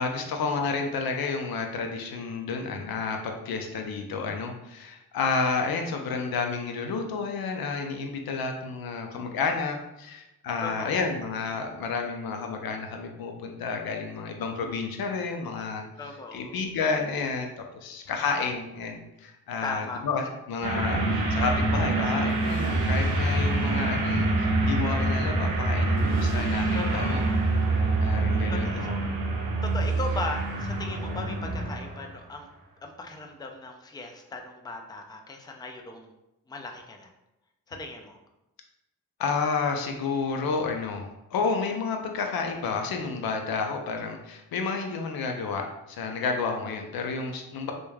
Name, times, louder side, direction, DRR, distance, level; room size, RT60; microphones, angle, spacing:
voice 1, 0.0-15.8 16.3-17.5 17.8-27.2 28.0-29.0 39.2-47.7, left 4 dB, 70° left, 3 dB, 0.5 m, -30 dB
voice 2, 10.6-11.1 16.0-16.6 18.1-18.2 19.6-20.3 26.7-27.5 28.5-28.9 29.6-32.5 32.8-36.1 36.5-37.1 37.7-38.2, left 3 dB, 10° left, 3 dB, 0.4 m, -38 dB
sound 1, 20.6-32.0, right 2 dB, 80° right, 0.6 m, -26 dB
3.0 x 2.2 x 2.3 m, 0.93 s
supercardioid pair, 45°, 38 cm